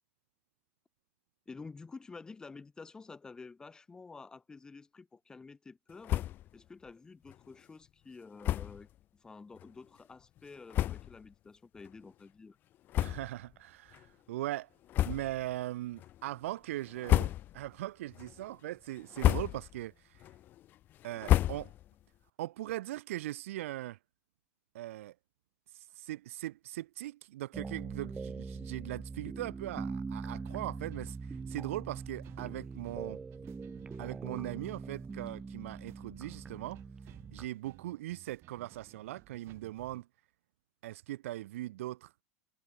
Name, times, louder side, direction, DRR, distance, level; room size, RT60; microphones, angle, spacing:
voice 1, 1.5-6.3 6.5-12.6, left 4 dB, 10° left, 1.9 m, -50 dB
sound 1, 6.0-6.5 6.9-7.0 7.3-7.4 8.4-8.8 9.6-9.7 10.4-10.5 10.7-11.3 11.8-11.9 12.9-13.6 13.9-14.1 14.9-15.5 15.9-16.4 16.9-17.7 18.1-18.6 19.0-19.8 20.2-22.0, left 13 dB, 30° left, 0.5 m, -31 dB
voice 2, 13.0-14.7 15.0-20.2 21.0-21.7 22.4-24.0 24.7-25.1 25.7-33.2 34.0-36.8 37.3-40.1 40.8-42.1, right 15 dB, 85° right, 0.8 m, -40 dB
sound 2, 27.5-37.5, right 4 dB, 10° right, 0.8 m, -42 dB
sound 3, 30.5-40.0, right 16 dB, 35° right, 6.5 m, -58 dB
supercardioid pair, 160°, 7 cm